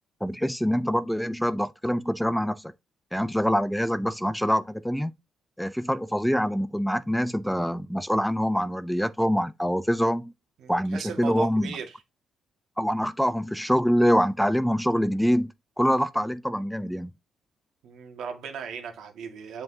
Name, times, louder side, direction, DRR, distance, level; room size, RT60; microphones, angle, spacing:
voice 1, 0.2-2.7 3.1-5.1 5.6-10.3 10.7-11.8 12.8-15.5 15.8-17.1, equal, ahead, 0.4 m, -25 dB
voice 2, 10.6-11.9 17.8-19.6, right 6 dB, 75° right, 1.9 m, -37 dB
7.4 x 5.3 x 2.7 m
cardioid pair, 90°, 0 cm